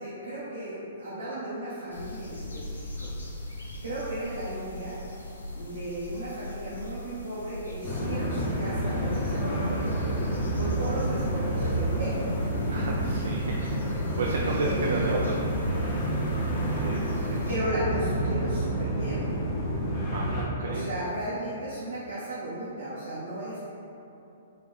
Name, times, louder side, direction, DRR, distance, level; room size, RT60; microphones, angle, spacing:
voice 1, 0.0-3.1 3.8-5.0 5.5-9.9 10.5-12.2 14.4-15.2 17.5-19.3 20.6-23.6, right 1 dB, 80° right, -10 dB, 0.8 m, -35 dB
sound 1, 1.9-17.6, left 1 dB, 75° left, 0.6 m, -41 dB
sound 2, 7.8-20.5, right 1 dB, 30° left, 0.8 m, -29 dB
voice 2, 12.6-13.8 14.2-15.2 15.6-16.0 16.6-17.4 20.0-20.9, right 2 dB, 65° right, -1 dB, 0.3 m, -33 dB
4.1 x 2.5 x 3.3 m, 2.8 s
figure-of-eight pair, 115°, 0 cm